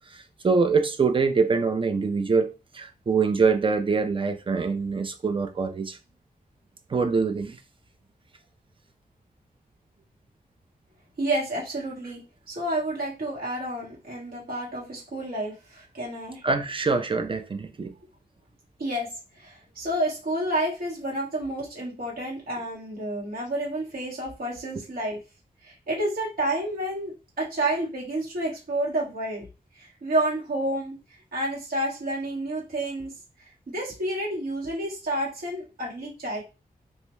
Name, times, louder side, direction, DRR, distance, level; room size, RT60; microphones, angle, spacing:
voice 1, 0.1-6.0 6.9-7.6 16.4-17.9, right 4 dB, 35° right, 0.4 m, -24 dB
voice 2, 11.2-12.2 12.5-16.4 18.8-19.1 19.3-25.2 25.6-29.5 29.7-31.0 31.3-33.1 33.4-36.4, right 1 dB, 70° right, 1.4 m, -30 dB
2.7 x 2.1 x 3.1 m
wide cardioid pair, 110°, 16 cm